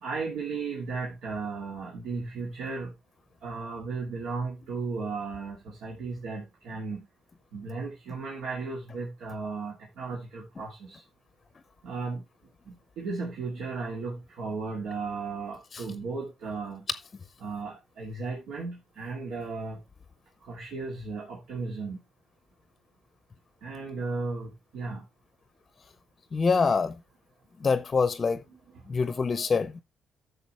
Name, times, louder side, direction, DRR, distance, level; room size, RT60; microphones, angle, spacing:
voice 1, 0.0-2.9 3.4-7.0 7.5-11.0 11.8-12.2 12.7-16.8 17.4-19.8 20.4-22.0 23.6-25.0 28.5-28.6 28.9-29.5, right 4 dB, 85° right, 2.7 m, -35 dB
voice 2, 26.3-27.0 27.6-28.4 28.9-29.8, left 5 dB, 35° left, 0.6 m, -25 dB
11.5 x 6.8 x 3.2 m
cardioid pair, 115°, 0 cm